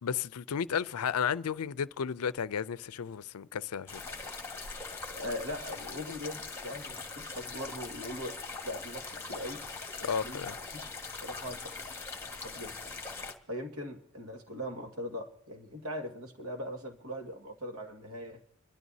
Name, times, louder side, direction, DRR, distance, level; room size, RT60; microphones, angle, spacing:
voice 1, 0.0-4.1 10.0-10.6, left 7 dB, 85° left, 0.5 m, -33 dB
sound 1, 3.9-13.3, left 4 dB, 10° left, 1.5 m, -42 dB
voice 2, 5.1-8.4 8.6-9.7 10.0-10.4 10.7-10.8 11.2-11.8 12.4-12.8 13.5-18.4, equal, 75° right, 2.0 m, -40 dB
28.5 x 12.5 x 2.8 m
head